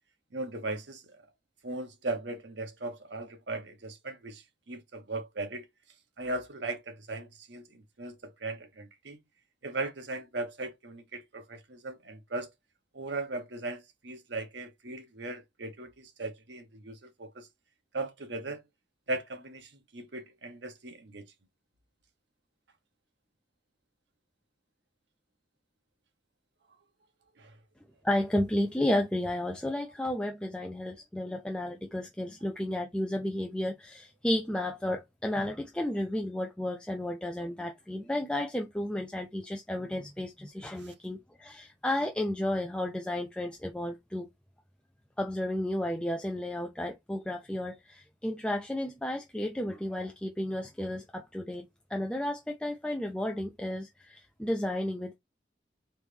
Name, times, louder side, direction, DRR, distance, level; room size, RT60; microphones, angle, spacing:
voice 1, 0.3-1.0 1.6-5.7 6.2-9.2 9.6-12.5 12.9-17.5 17.9-18.6 19.1-21.2 27.4-27.5 40.8-40.9, right 2 dB, 70° right, 0.9 m, -38 dB
voice 2, 28.0-44.3 45.2-55.2, left 1 dB, 5° left, 0.4 m, -32 dB
3.8 x 3.3 x 3.3 m
head